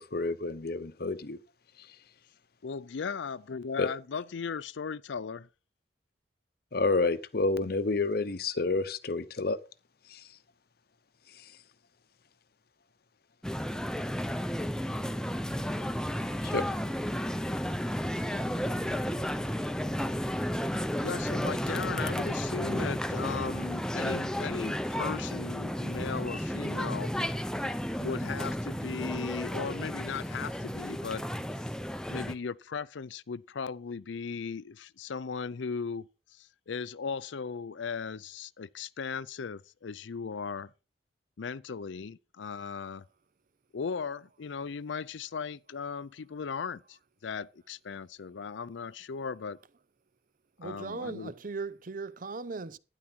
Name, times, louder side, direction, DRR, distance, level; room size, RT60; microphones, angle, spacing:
voice 1, 0.0-1.4 3.8-3.9 6.7-9.6 10.1-10.2 16.4-16.6, left 3 dB, 55° left, 0.8 m, -29 dB
voice 2, 2.6-5.5 21.0-27.1 28.0-31.2 32.1-40.7 41.4-43.1 43.7-49.6 50.6-51.3, left 5 dB, 80° left, 0.5 m, -37 dB
sound 1, 13.4-32.3, equal, 5° left, 0.6 m, -33 dB
voice 3, 50.6-52.8, right 4 dB, 45° right, 0.6 m, -38 dB
12.5 x 9.9 x 4.5 m
head